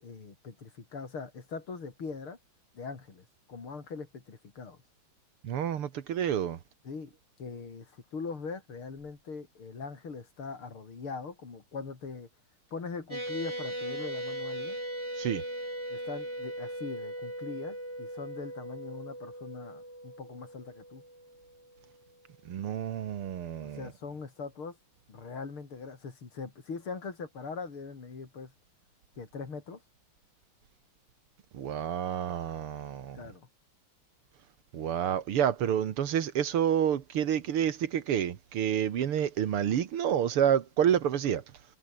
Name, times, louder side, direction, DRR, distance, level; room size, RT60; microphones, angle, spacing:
voice 1, 0.0-2.4 2.7-4.8 6.8-7.1 7.4-12.3 12.7-14.8 15.9-21.0 23.6-24.8 25.1-28.5 29.2-29.8 33.1-33.5, left 4 dB, 70° left, 4.5 m, -41 dB
voice 2, 5.4-6.6 15.2-15.4 22.5-23.8 31.5-33.2 34.7-41.4, right 9 dB, 85° right, 2.4 m, -29 dB
sound 1, 13.1-21.8, right 1 dB, 10° right, 6.9 m, -39 dB
omnidirectional pair, 2.4 m